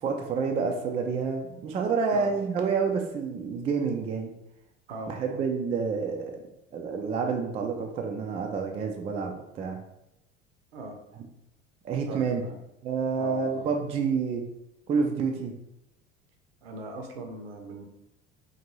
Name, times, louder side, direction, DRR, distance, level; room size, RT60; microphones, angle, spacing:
voice 1, 0.0-4.3 5.1-6.4 6.7-9.8 11.8-12.4 12.8-14.4 14.9-15.5, right 5 dB, 20° right, 3 dB, 0.3 m, -28 dB
voice 2, 4.9-5.4 10.7-11.0 12.1-12.6 13.2-13.8 16.6-17.8, right 2 dB, 65° right, 3 dB, 0.7 m, -39 dB
3.9 x 2.5 x 3.0 m, 0.85 s
figure-of-eight pair, 70°, 32 cm